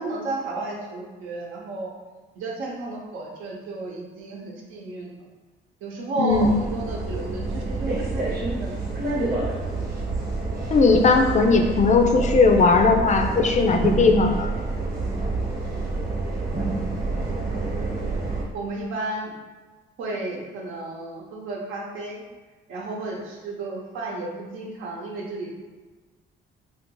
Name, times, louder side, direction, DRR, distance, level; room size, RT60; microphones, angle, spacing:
voice 1, 0.0-1.9 2.3-5.1 5.8-8.8 9.3-9.4 18.5-19.3 20.0-22.2 22.7-25.6, right 2 dB, 85° right, -2 dB, 0.8 m, -32 dB
voice 2, 6.2-6.5 10.7-14.5, left 4 dB, 35° left, 4 dB, 0.4 m, -18 dB
sound 1, 6.3-18.4, right 3 dB, 45° right, 0.9 m, -28 dB
2.8 x 2.5 x 3.7 m, 1.3 s
cardioid pair, 90°, 20 cm